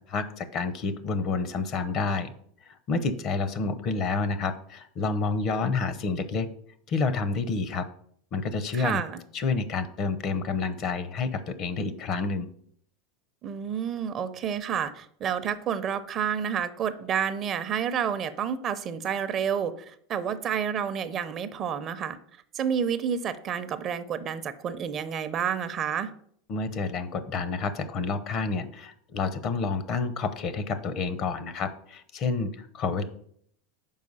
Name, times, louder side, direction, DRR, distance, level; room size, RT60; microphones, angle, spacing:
voice 1, 0.1-2.3 2.7-6.5 6.9-7.9 8.3-9.0 9.3-12.5 26.5-33.0, left 4 dB, 45° left, 12 dB, 0.8 m, -29 dB
voice 2, 8.7-9.2 13.4-22.2 22.5-26.1, right 8 dB, 40° right, 12 dB, 0.6 m, -29 dB
5.6 x 4.5 x 5.5 m, 0.63 s
supercardioid pair, 110°, 0 cm